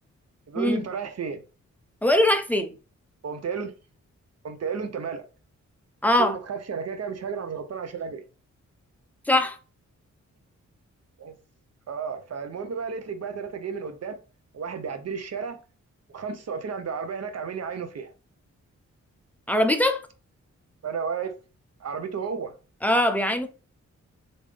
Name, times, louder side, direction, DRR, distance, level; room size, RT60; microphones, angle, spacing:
voice 1, 0.5-1.4 3.2-3.7 4.4-5.2 6.2-8.2 11.2-11.3 11.9-14.2 14.5-15.6 16.1-18.1 20.8-21.3 21.8-22.5, right 6 dB, 60° right, 0.7 m, -32 dB
voice 2, 2.0-2.7 6.0-6.4 9.3-9.6 19.5-20.0 22.8-23.5, left 1 dB, 5° left, 0.4 m, -21 dB
3.5 x 2.6 x 3.3 m
wide cardioid pair, 95°, 30 cm